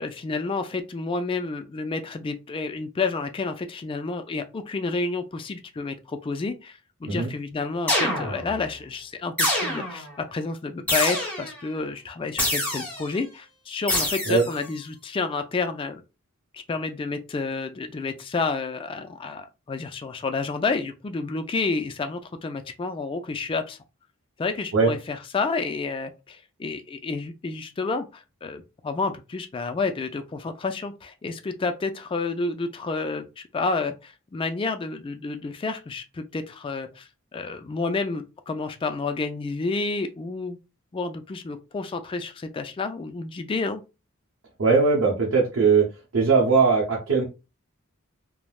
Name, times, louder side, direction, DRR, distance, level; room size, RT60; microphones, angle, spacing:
voice 1, 0.0-16.0 16.5-23.8 24.4-40.6 40.9-43.8, left 4 dB, 25° left, 0.3 m, -30 dB
sound 1, 7.9-8.6 9.4-10.1 10.9-11.6 12.4-13.1 13.9-14.6, left 1 dB, 5° left, 1.1 m, -26 dB
voice 2, 44.6-45.9 46.1-47.2, right 4 dB, 70° right, 0.8 m, -20 dB
3.2 x 2.1 x 2.3 m
head